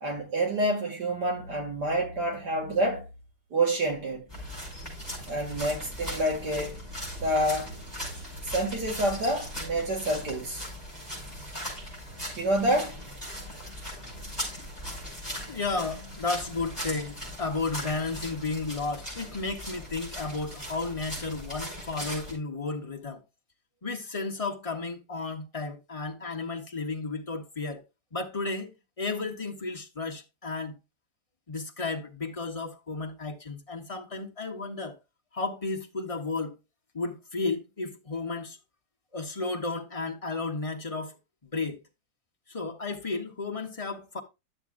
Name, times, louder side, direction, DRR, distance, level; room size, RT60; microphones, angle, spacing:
voice 1, 0.0-3.0 3.5-4.3 5.3-6.8 7.2-7.7 8.4-10.6 12.4-13.0, right 1 dB, 80° right, 2.8 m, -28 dB
sound 1, 4.3-22.3, equal, 10° right, 5.3 m, -39 dB
voice 2, 15.5-23.2 23.8-27.8 28.1-30.7 31.5-35.0 35.3-36.5 36.9-38.6 39.1-41.1 41.4-41.8 42.5-44.2, left 3 dB, 30° left, 0.7 m, -33 dB
11.5 x 7.3 x 2.4 m
omnidirectional pair, 1.7 m